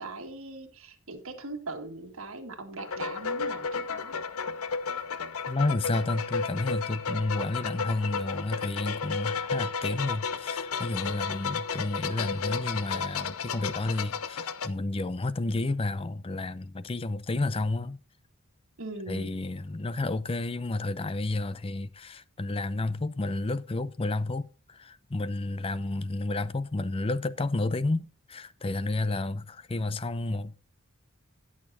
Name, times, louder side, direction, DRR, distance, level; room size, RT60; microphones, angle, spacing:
voice 1, 0.0-4.2 18.8-19.4, right 3 dB, 70° right, 1.8 m, -40 dB
sound 1, 2.8-14.7, left 5 dB, 85° left, 0.7 m, -33 dB
voice 2, 5.5-18.0 19.1-30.6, left 2 dB, 25° left, 0.5 m, -31 dB
19.5 x 6.6 x 2.7 m
head